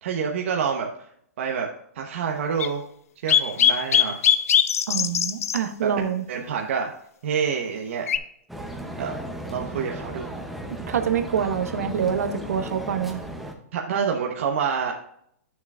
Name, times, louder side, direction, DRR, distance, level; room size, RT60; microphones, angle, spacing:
voice 1, 0.0-1.1 1.4-1.7 1.9-2.8 3.2-4.2 5.8-6.0 6.3-6.9 7.2-8.1 9.0-9.2 9.5-10.3 13.7-14.9, right 6 dB, 50° right, 1 dB, 1.0 m, -27 dB
sound 1, 2.6-2.7 3.3-5.6 8.1-8.2, left 9 dB, 70° left, 0.6 m, -20 dB
voice 2, 4.9-6.2 10.9-13.2, right 7 dB, 75° right, 7 dB, 1.1 m, -26 dB
sound 2, 8.5-13.5, right 1 dB, ahead, 0.6 m, -35 dB
9.4 x 6.9 x 2.4 m, 0.67 s
hypercardioid pair, 170°, 8 cm